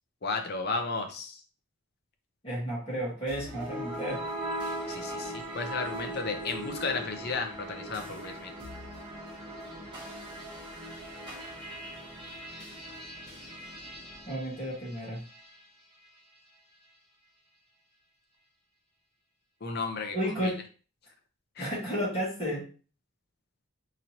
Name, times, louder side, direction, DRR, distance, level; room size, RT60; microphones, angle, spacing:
voice 1, 0.2-1.4 4.9-8.5 19.6-20.2 20.4-20.5 21.6-21.7, left 4 dB, 45° left, 4 dB, 0.6 m, -33 dB
voice 2, 2.4-4.3 14.3-15.2 20.1-20.6 21.6-22.6, equal, 25° left, -6 dB, 1.8 m, -32 dB
sound 1, 3.3-15.6, right 1 dB, 20° right, 1.4 m, -40 dB
4.1 x 3.0 x 2.8 m, 0.37 s
head